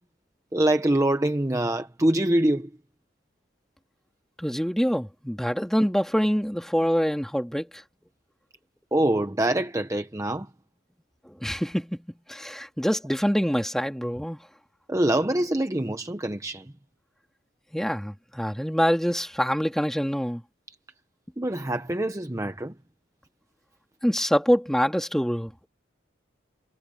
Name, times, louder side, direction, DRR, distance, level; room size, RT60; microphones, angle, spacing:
voice 1, 0.5-2.7 8.9-10.5 14.9-16.7 21.4-22.7, right 1 dB, 15° right, 0.7 m, -24 dB
voice 2, 4.4-7.8 11.3-14.4 17.7-20.4 24.0-25.5, equal, ahead, 2.5 m, -25 dB
head